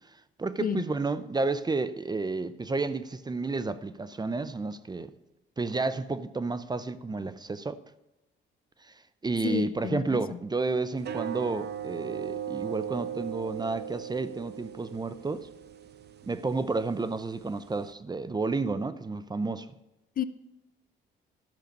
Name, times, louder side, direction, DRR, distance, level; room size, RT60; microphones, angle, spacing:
voice 1, 0.4-5.1 5.6-7.8 8.8-8.9 9.2-15.5 16.2-19.7, right 3 dB, 20° right, 0.6 m, -31 dB
voice 2, 9.4-10.4 20.2-20.3, left 8 dB, 45° left, 0.6 m, -31 dB
sound 1, 11.0-17.9, right 9 dB, 55° right, 0.8 m, -39 dB
12.0 x 6.6 x 5.3 m
cardioid pair, 90°, 20 cm